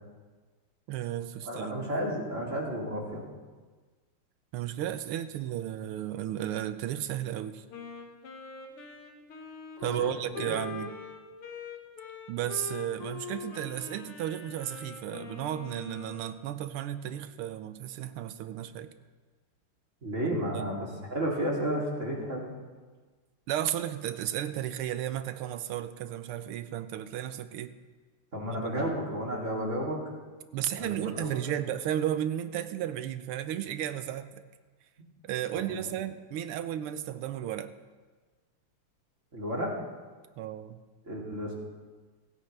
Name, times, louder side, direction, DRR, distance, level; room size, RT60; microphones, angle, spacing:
voice 1, 0.9-1.9 4.5-7.6 9.8-11.0 12.3-18.9 20.5-20.8 23.5-27.8 28.5-28.7 30.5-34.3 35.2-37.7 40.4-40.8, right 11 dB, 90° right, 11 dB, 1.6 m, -34 dB
voice 2, 1.4-3.2 9.8-10.5 20.0-22.5 28.3-30.0 30.8-31.3 35.5-35.8 39.3-39.7 41.0-41.5, equal, 35° right, -4 dB, 3.3 m, -32 dB
Wind instrument woodwind instrument, 7.7-16.4, left 5 dB, 85° left, 2.4 m, -43 dB
29.5 x 9.8 x 3.4 m, 1.4 s
omnidirectional pair, 2.4 m